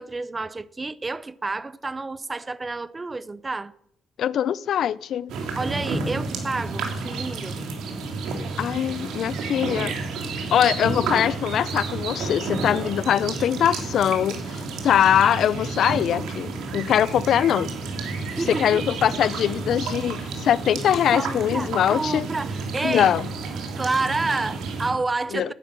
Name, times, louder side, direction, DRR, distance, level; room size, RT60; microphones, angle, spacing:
voice 1, 0.0-3.7 5.5-7.6 18.3-18.8 21.1-23.1 23.8-25.5, right 3 dB, 25° right, 0.7 m, -29 dB
voice 2, 4.2-5.3 8.6-9.9 10.5-17.7 18.5-22.3 22.8-23.3 25.3-25.5, left 10 dB, 70° left, 0.5 m, -22 dB
sound 1, 5.3-24.9, right 4 dB, 85° right, 2.9 m, -31 dB
10.0 x 10.0 x 8.7 m
cardioid pair, 90°, 0 cm